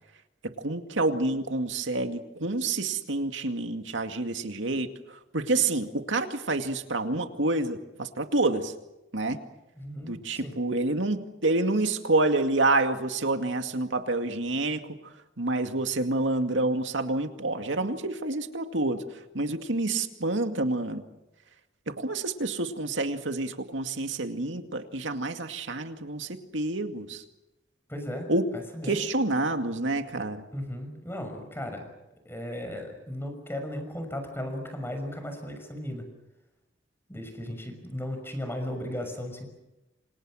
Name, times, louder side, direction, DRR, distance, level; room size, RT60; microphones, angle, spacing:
voice 1, 0.4-8.7 9.1-9.4 10.0-14.8 15.4-21.0 21.9-27.2 28.3-28.5 28.9-30.5, right 2 dB, 80° right, 6 dB, 2.2 m, -28 dB
voice 2, 9.8-10.5 27.9-28.3 28.5-29.0 30.5-31.8 32.2-36.1 37.1-39.5, left 1 dB, 15° left, 6 dB, 6.0 m, -36 dB
28.5 x 26.5 x 6.5 m, 0.99 s
head